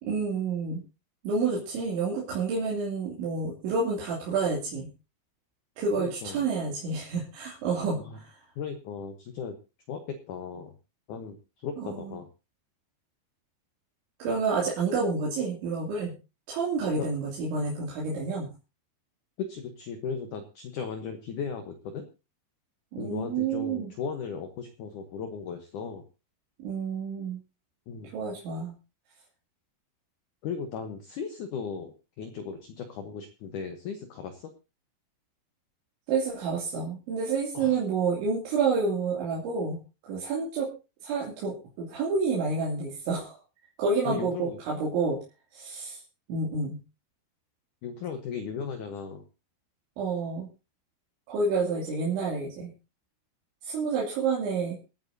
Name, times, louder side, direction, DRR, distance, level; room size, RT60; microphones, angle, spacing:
voice 1, 0.0-0.8 1.2-4.9 5.8-8.3 11.8-12.0 14.2-16.1 16.5-18.5 22.9-23.9 26.6-27.4 28.1-28.7 36.1-39.8 40.0-40.7 41.0-43.4 43.8-45.2 45.5-46.0 46.3-46.8 50.0-50.5 51.3-52.7 53.6-54.8, right 4 dB, 85° right, -4 dB, 5.1 m, -29 dB
voice 2, 6.0-6.5 8.0-8.2 8.6-9.6 9.9-10.8 11.1-11.4 11.6-12.3 17.0-17.1 19.4-22.1 23.0-26.0 27.9-28.1 30.4-34.5 37.5-37.8 44.1-44.6 47.8-49.3, left 6 dB, 75° left, 7 dB, 1.8 m, -36 dB
27.5 x 9.3 x 2.7 m, 0.30 s
omnidirectional pair, 5.2 m